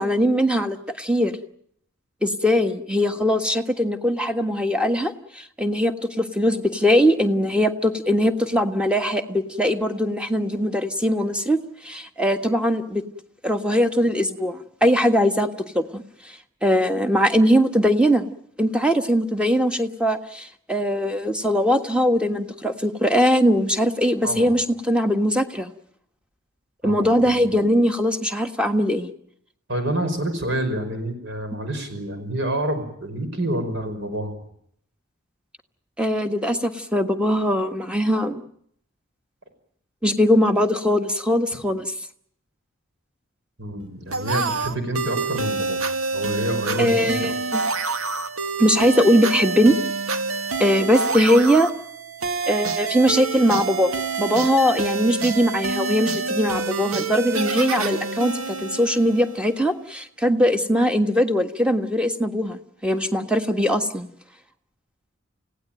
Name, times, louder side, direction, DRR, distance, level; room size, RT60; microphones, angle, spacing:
voice 1, 0.0-1.3 2.2-11.6 11.8-13.0 13.4-15.5 15.7-16.0 16.6-18.3 18.6-25.7 26.8-29.1 36.0-38.4 40.0-41.9 46.8-47.6 48.6-49.8 50.6-51.7 52.5-53.9 54.2-64.1, equal, 5° right, 7 dB, 1.5 m, -21 dB
voice 2, 26.8-27.5 29.7-34.4 43.6-45.8 46.1-47.3, right 1 dB, 60° right, 8 dB, 5.5 m, -28 dB
sound 1, 44.1-59.6, right 4 dB, 90° right, 1.9 m, -27 dB
29.5 x 17.0 x 9.1 m, 0.70 s
head